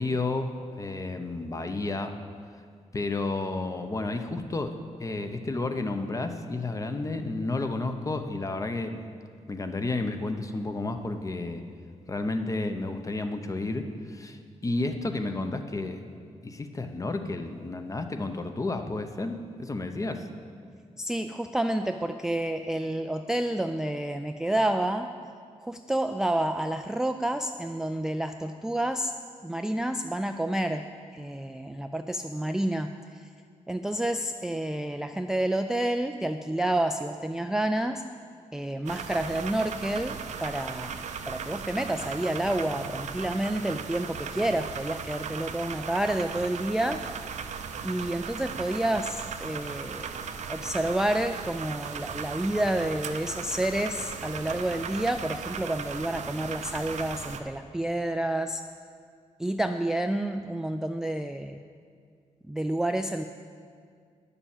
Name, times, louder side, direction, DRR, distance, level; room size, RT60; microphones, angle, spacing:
voice 1, 0.0-2.2 2.9-9.0 9.5-11.6 12.1-16.0 16.4-20.3, left 2 dB, 25° left, 7 dB, 0.8 m, -31 dB
voice 2, 21.0-25.1 25.6-29.1 29.4-30.9 31.1-33.3 33.7-38.0 38.5-47.0 47.8-50.1 50.5-58.6 59.4-61.6 62.5-63.2, right 1 dB, 5° right, 7 dB, 0.3 m, -29 dB
sound 1, 38.9-57.4, right 6 dB, 75° right, 0.6 m, -37 dB
10.0 x 6.9 x 7.2 m, 2.1 s
wide cardioid pair, 115°, 12 cm